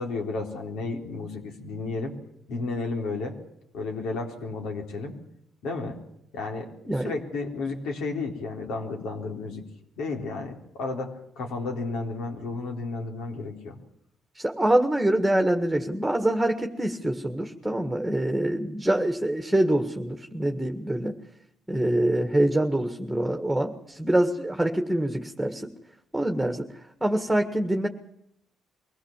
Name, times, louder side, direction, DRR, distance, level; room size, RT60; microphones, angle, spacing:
voice 1, 0.0-2.1 2.5-3.4 3.7-5.1 5.6-6.0 6.3-6.7 7.0-9.6 10.0-13.8, left 3 dB, 85° left, 2 dB, 3.9 m, -32 dB
voice 2, 14.4-21.2 21.7-25.7 26.1-26.7 27.0-27.9, right 1 dB, 5° right, 5 dB, 1.7 m, -25 dB
23.0 x 17.0 x 7.4 m, 0.75 s
cardioid pair, 90°, 0 cm